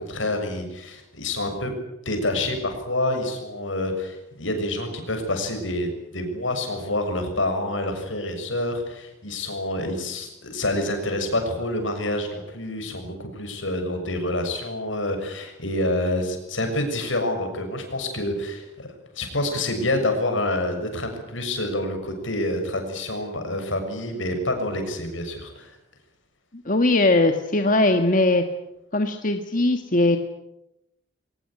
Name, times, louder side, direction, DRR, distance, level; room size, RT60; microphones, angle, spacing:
voice 1, 0.0-1.7 2.0-25.8, left 1 dB, 75° left, 6 dB, 6.8 m, -27 dB
voice 2, 26.6-28.4 28.9-30.2, left 2 dB, 40° left, 6 dB, 1.6 m, -20 dB
23.5 x 20.0 x 9.8 m, 0.88 s
head